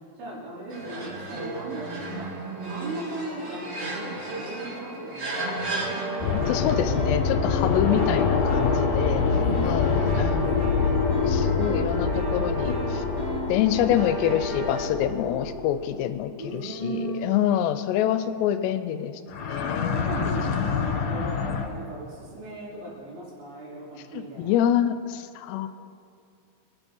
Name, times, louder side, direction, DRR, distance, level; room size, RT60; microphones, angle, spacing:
voice 1, 0.2-6.0 9.3-11.2 16.4-17.5 19.9-24.5, right 2 dB, 80° right, -7 dB, 6.5 m, -37 dB
sound 1, 0.7-6.9, right 2 dB, 30° right, 4.3 m, -34 dB
sound 2, 5.6-14.9, right 2 dB, 55° right, 4.7 m, -35 dB
sound 3, 6.2-16.1 19.3-21.6, left 5 dB, 60° left, 2.6 m, -25 dB
voice 2, 6.3-9.2 9.7-10.6 11.2-13.0 13.5-20.1 24.1-25.7, left 10 dB, 80° left, 11 dB, 2.6 m, -26 dB
26.5 x 9.4 x 5.4 m, 2.5 s
omnidirectional pair, 5.3 m